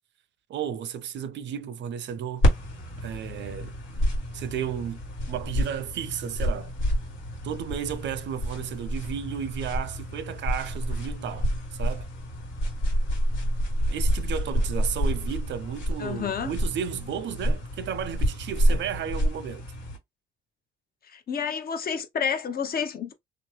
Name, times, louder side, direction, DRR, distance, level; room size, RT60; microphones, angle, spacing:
voice 1, 0.5-2.5 3.0-3.7 4.3-5.0 5.3-6.7 7.4-12.1 13.9-19.6, right 9 dB, 65° right, 0.5 m, -33 dB
sound 1, 2.4-20.0, equal, 80° left, 1.4 m, -28 dB
voice 2, 16.0-16.5 21.0-23.1, left 7 dB, 50° left, 0.8 m, -30 dB
2.8 x 2.0 x 3.1 m
cardioid pair, 90°, 20 cm